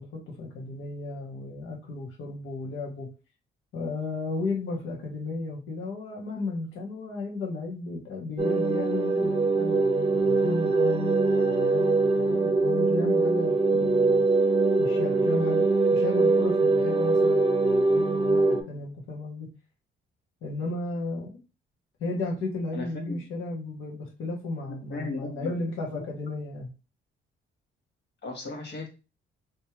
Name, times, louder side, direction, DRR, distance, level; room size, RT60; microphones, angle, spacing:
voice 1, 0.0-3.1 3.7-14.3 14.8-19.5 20.4-21.3 22.0-26.7, left 3 dB, 80° left, -1 dB, 1.4 m, -34 dB
sound 1, 8.4-18.6, right 3 dB, 25° right, 0.8 m, -23 dB
voice 2, 22.7-23.2 24.7-25.5 25.9-26.3 28.2-28.9, left 3 dB, 60° left, 1 dB, 1.5 m, -36 dB
3.2 x 3.2 x 2.9 m, 0.31 s
cardioid pair, 90°, 20 cm